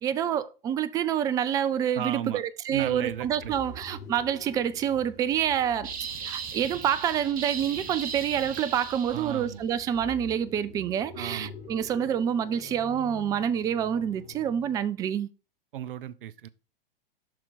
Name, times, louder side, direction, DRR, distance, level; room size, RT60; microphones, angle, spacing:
voice 1, 0.0-5.9 6.2-15.3, right 9 dB, 15° right, 0.3 m, -27 dB
voice 2, 1.9-2.4 2.7-3.5 9.1-9.6 11.1-11.5 15.7-16.5, right 11 dB, 60° right, 0.7 m, -35 dB
sound 1, 2.7-14.9, left 3 dB, 25° left, 3.4 m, -47 dB
sound 2, 5.8-9.5, right 6 dB, 30° right, 1.3 m, -37 dB
7.4 x 5.9 x 4.0 m
figure-of-eight pair, 100°, 30 cm